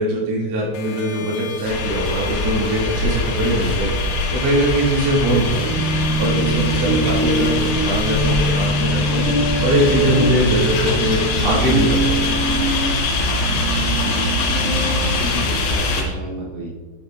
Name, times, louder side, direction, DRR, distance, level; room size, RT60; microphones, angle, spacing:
voice 1, 0.0-5.8 6.2-9.2 9.6-12.3, right 1 dB, 40° right, -8 dB, 2.8 m, -21 dB
sound 1, 0.7-8.7, left 7 dB, 85° left, 3.3 m, -35 dB
sound 2, 1.6-16.0, left 2 dB, 70° left, 3.1 m, -22 dB
sound 3, 5.4-15.4, right 1 dB, 60° right, 3.2 m, -24 dB
voice 2, 14.9-16.7, right 1 dB, 80° right, -4 dB, 3.7 m, -32 dB
9.5 x 6.4 x 2.5 m, 1.4 s
omnidirectional pair, 5.7 m